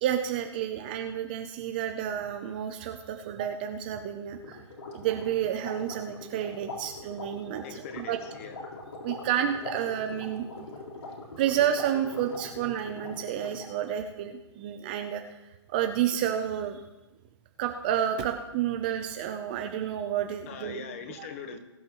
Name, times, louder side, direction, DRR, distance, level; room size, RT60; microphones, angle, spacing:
voice 1, 0.0-4.6 4.9-8.2 9.0-10.4 11.4-15.2 15.7-16.8 17.6-20.8 21.2-21.3, right 10 dB, 20° right, 6 dB, 0.5 m, -30 dB
sound 1, 4.4-13.8, left 3 dB, 70° left, 4.0 m, -42 dB
voice 2, 7.6-8.7 20.4-21.6, left 6 dB, 30° left, 8 dB, 1.2 m, -41 dB
21.0 x 10.5 x 3.0 m, 1.0 s
hypercardioid pair, 165°, 15 cm